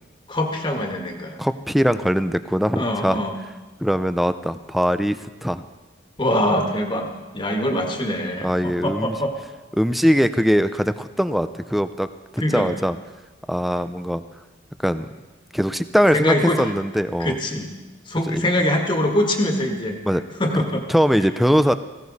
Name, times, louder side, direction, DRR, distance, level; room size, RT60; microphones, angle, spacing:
voice 1, 0.3-1.4 2.8-3.4 6.2-7.1 7.3-9.4 12.4-12.7 16.1-16.7 17.2-17.7 18.0-20.0 20.4-20.8 21.2-21.3, left 1 dB, 25° left, 3 dB, 1.7 m, -23 dB
voice 2, 1.4-3.2 3.8-5.6 8.4-9.2 9.8-12.1 12.3-13.0 13.5-14.2 14.8-15.1 15.5-17.4 18.3-18.4 20.1-20.2 20.9-21.7, equal, ahead, 11 dB, 0.4 m, -21 dB
18.5 x 16.0 x 4.1 m, 1.2 s
head